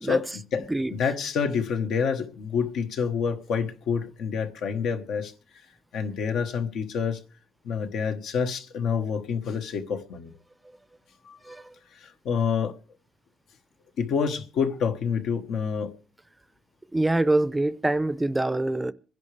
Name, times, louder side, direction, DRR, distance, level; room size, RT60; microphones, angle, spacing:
voice 1, 0.0-0.6 0.9-5.3 5.9-7.2 7.6-10.3 11.3-11.4 12.2-12.7 14.0-15.9, left 6 dB, 80° left, 1.3 m, -27 dB
voice 2, 16.9-18.9, right 2 dB, 15° right, 0.6 m, -24 dB
26.0 x 11.0 x 3.3 m
cardioid pair, 90°, 0 cm